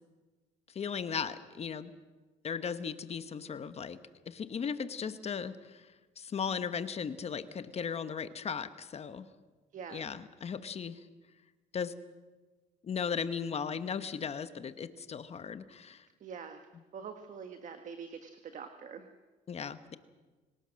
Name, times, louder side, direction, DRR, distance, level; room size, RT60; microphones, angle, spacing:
voice 1, 0.7-1.9 2.4-4.0 4.3-5.9 6.2-9.3 9.9-11.0 11.7-11.9 12.8-16.0 19.5-20.0, left 6 dB, 40° left, 12 dB, 1.1 m, -37 dB
voice 2, 9.7-10.1 16.2-16.7 16.9-19.1, right 6 dB, 50° right, 7 dB, 1.4 m, -45 dB
26.0 x 18.0 x 6.4 m, 1.3 s
cardioid pair, 110°, 17 cm